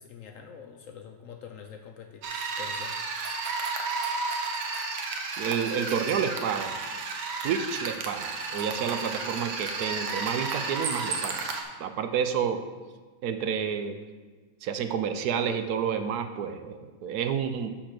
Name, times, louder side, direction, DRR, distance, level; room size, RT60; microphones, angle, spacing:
voice 1, 0.0-3.0, left 7 dB, 65° left, 5 dB, 0.9 m, -45 dB
sound 1, 2.2-11.6, right 4 dB, 90° right, 1.5 m, -32 dB
voice 2, 5.4-6.8 7.4-11.5 11.8-12.6 13.2-14.0 14.6-17.7, right 7 dB, 70° right, 8 dB, 1.1 m, -29 dB
6.5 x 5.8 x 5.9 m, 1.4 s
omnidirectional pair, 1.8 m